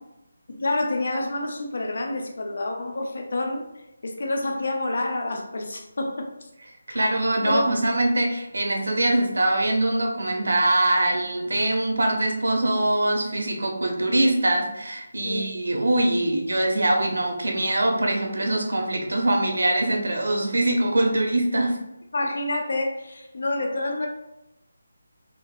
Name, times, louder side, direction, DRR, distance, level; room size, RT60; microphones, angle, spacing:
voice 1, 0.5-3.7 4.0-6.5 6.9-7.1 7.4-7.8 15.2-15.5 22.1-24.1, left 2 dB, 60° left, 3 dB, 0.5 m, -28 dB
voice 2, 6.9-21.8, right 1 dB, 85° right, 2 dB, 0.8 m, -23 dB
3.8 x 2.6 x 2.4 m, 0.91 s
figure-of-eight pair, 170°, 0 cm